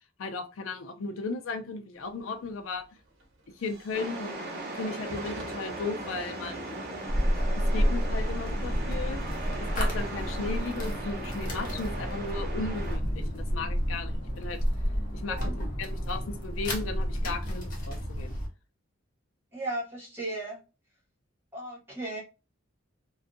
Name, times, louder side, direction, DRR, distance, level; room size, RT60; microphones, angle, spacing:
voice 1, 0.2-2.8 3.6-4.3 4.8-6.8 7.6-9.2 9.8-14.6 15.1-18.4, left 3 dB, 80° left, 7 dB, 0.4 m, -36 dB
Hiss / Fire / Tick, 2.0-12.4, right 1 dB, 80° right, 0.9 m, -50 dB
sound 1, 3.9-13.0, right 2 dB, 50° right, 0.7 m, -38 dB
sound 2, 7.1-18.5, equal, 45° left, 0.7 m, -30 dB
voice 2, 15.3-15.6 19.5-20.6 21.5-22.2, right 2 dB, 10° right, -5 dB, 1.2 m, -35 dB
2.6 x 2.3 x 2.5 m, 0.30 s
head